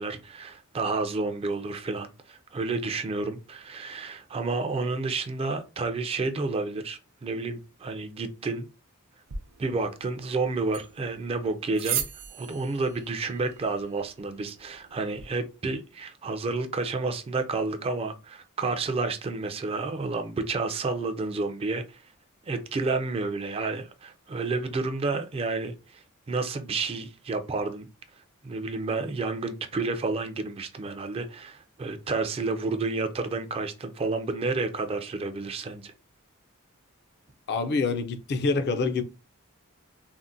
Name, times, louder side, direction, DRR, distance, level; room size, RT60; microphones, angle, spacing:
voice 1, 0.0-8.7 9.6-12.0 12.3-22.0 22.4-25.7 26.3-27.9 28.4-35.9, right 3 dB, 25° right, 0.3 m, -30 dB
sound 1, 9.3-15.3, right 9 dB, 70° right, 0.5 m, -38 dB
voice 2, 37.5-39.0, left 4 dB, 50° left, 0.4 m, -26 dB
3.6 x 2.1 x 2.5 m
head